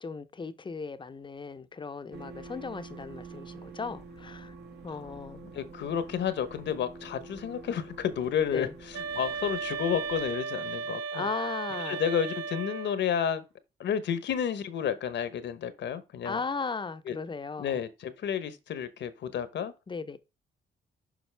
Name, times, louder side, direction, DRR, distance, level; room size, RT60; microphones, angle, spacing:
voice 1, 0.0-4.5 4.8-5.4 8.5-8.7 11.1-12.0 16.2-17.8 19.9-20.2, left 4 dB, 25° left, 0.6 m, -36 dB
sound 1, 2.1-10.2, right 3 dB, 55° right, 1.3 m, -47 dB
voice 2, 5.4-11.3 11.8-13.4 13.8-16.4 17.0-17.2 17.6-19.7, left 8 dB, 65° left, 0.9 m, -31 dB
sound 2, 8.9-13.1, right 5 dB, 90° right, 0.6 m, -35 dB
7.1 x 5.2 x 3.3 m
cardioid pair, 90°, 20 cm